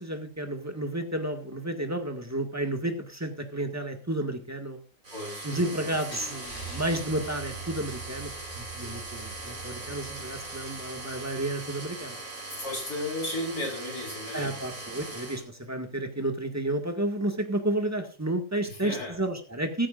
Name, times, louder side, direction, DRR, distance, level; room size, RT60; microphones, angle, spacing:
voice 1, 0.0-4.8 5.4-12.2 14.3-19.9, right 1 dB, 10° right, 4 dB, 1.8 m, -31 dB
sound 1, 5.0-15.4, right 2 dB, 50° right, 4.8 m, -40 dB
voice 2, 5.1-5.9 12.6-14.6 18.7-19.1, left 1 dB, 60° left, 1 dB, 5.3 m, -34 dB
Car / Engine starting / Idling, 6.1-11.9, right 4 dB, 45° left, 5.9 m, -44 dB
16.5 x 14.5 x 2.6 m, 0.37 s
omnidirectional pair, 1.8 m